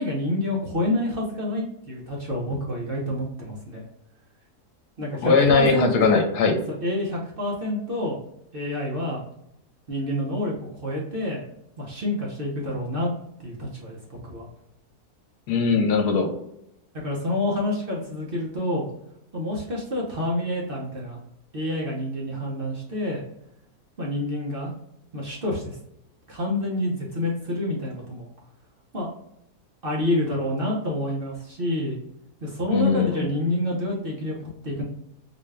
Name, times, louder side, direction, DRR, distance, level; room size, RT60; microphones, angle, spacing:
voice 1, 0.0-3.8 5.0-6.2 6.8-8.2 8.5-9.2 9.9-11.4 11.8-13.1 13.4-14.5 17.0-18.9 19.3-21.2 21.5-23.2 24.0-24.7 25.1-25.8 26.3-28.3 28.9-29.1 29.8-32.0 32.4-34.8, left 1 dB, 45° right, -3 dB, 0.8 m, -28 dB
voice 2, 5.2-6.6 15.5-16.3 32.7-33.3, left 4 dB, 80° left, 4 dB, 1.3 m, -20 dB
4.0 x 2.3 x 3.3 m, 0.78 s
omnidirectional pair, 1.7 m